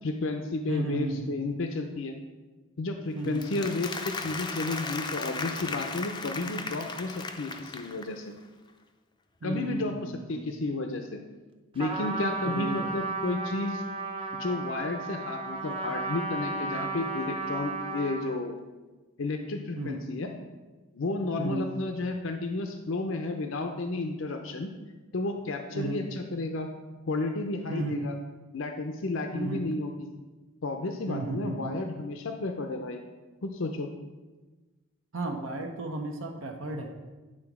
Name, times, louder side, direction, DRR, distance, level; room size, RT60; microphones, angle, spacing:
voice 1, 0.0-2.2 2.8-8.3 9.4-11.2 11.7-13.8 14.3-18.6 19.2-20.4 20.9-24.7 25.1-26.7 27.1-28.1 28.5-29.9 30.6-33.0 33.4-33.9, left 2 dB, 70° left, 5 dB, 0.6 m, -32 dB
voice 2, 0.7-1.4 3.1-3.5 9.4-10.4 12.4-12.9 19.7-20.0 21.4-21.7 25.7-26.0 27.7-28.1 29.3-29.7 31.1-31.8 35.1-36.9, right 2 dB, 70° right, 3 dB, 0.8 m, -34 dB
Applause, 3.2-8.3, left 4 dB, 20° left, 0.4 m, -36 dB
Trumpet, 11.8-18.4, right 3 dB, 25° right, 0.7 m, -34 dB
9.9 x 3.9 x 5.9 m, 1.2 s
head